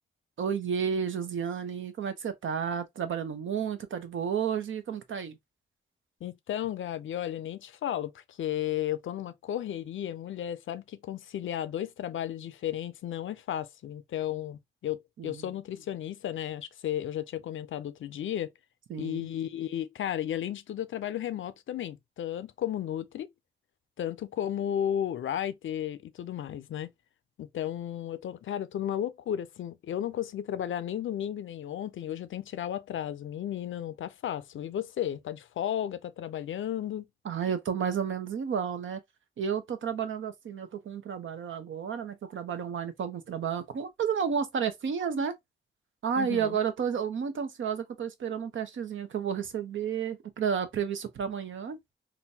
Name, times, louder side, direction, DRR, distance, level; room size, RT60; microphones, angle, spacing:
voice 1, 0.4-5.4 15.2-15.5 18.9-19.3 37.2-39.0 39.4-45.3 46.0-51.8, right 7 dB, 80° right, 0.7 m, -31 dB
voice 2, 6.2-18.5 19.0-23.3 24.0-26.9 27.4-37.1 46.2-46.6, left 11 dB, 85° left, 0.4 m, -34 dB
3.8 x 2.2 x 2.7 m
cardioid pair, 70°, 20 cm